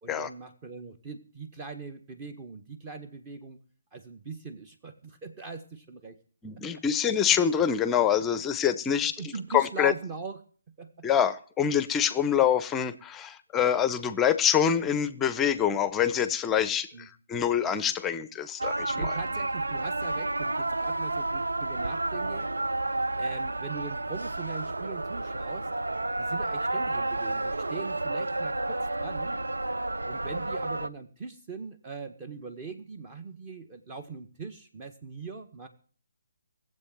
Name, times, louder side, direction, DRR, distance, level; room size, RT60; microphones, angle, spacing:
voice 1, 0.0-3.6 3.9-6.2 6.8-6.9 8.9-10.4 10.7-11.1 13.6-13.8 16.9-17.1 18.9-22.5 23.2-25.7 26.2-29.4 30.1-35.7, right 4 dB, 25° right, 8 dB, 1.6 m, -41 dB
voice 2, 6.4-9.9 11.0-19.0, left 8 dB, 10° left, 14 dB, 0.8 m, -26 dB
sound 1, 18.6-30.9, right 2 dB, 80° right, 0.7 m, -31 dB
19.5 x 7.9 x 9.3 m, 0.43 s
figure-of-eight pair, 145°, 0 cm